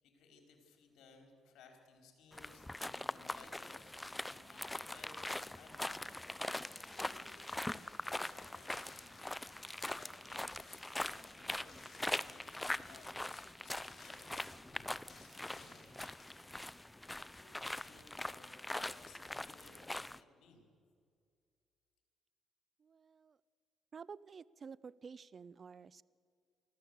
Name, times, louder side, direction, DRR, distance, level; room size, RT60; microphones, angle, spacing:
voice 1, 0.0-3.9 4.2-6.2 6.8-7.3 8.0-9.2 9.9-14.5 15.2-16.2 17.0-20.7, left 4 dB, 80° left, 4 dB, 4.4 m, -62 dB
sound 1, 2.3-20.2, left 1 dB, 10° left, 0.5 m, -43 dB
sound 2, 6.6-16.4, left 3 dB, 35° left, 7.1 m, -62 dB
voice 2, 22.8-23.4 23.9-26.0, right 5 dB, 45° right, 21 dB, 0.5 m, -51 dB
24.5 x 14.5 x 8.1 m, 2.2 s
cardioid pair, 90°, 0 cm